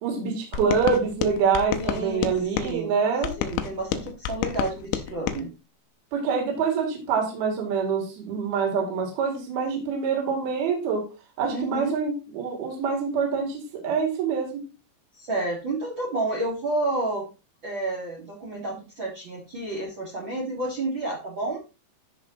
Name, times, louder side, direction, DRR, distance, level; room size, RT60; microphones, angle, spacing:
voice 1, 0.0-3.3 6.1-11.0 11.4-14.6, right 5 dB, 60° right, 0 dB, 3.8 m, -25 dB
sound 1, 0.5-2.7 3.2-5.4, left 10 dB, 80° left, 3.2 m, -30 dB
voice 2, 1.8-2.9 3.4-5.5 11.5-12.0 15.1-17.3 17.6-21.6, right 2 dB, 75° right, -4 dB, 1.1 m, -30 dB
13.5 x 5.1 x 2.9 m, 0.31 s
omnidirectional pair, 5.4 m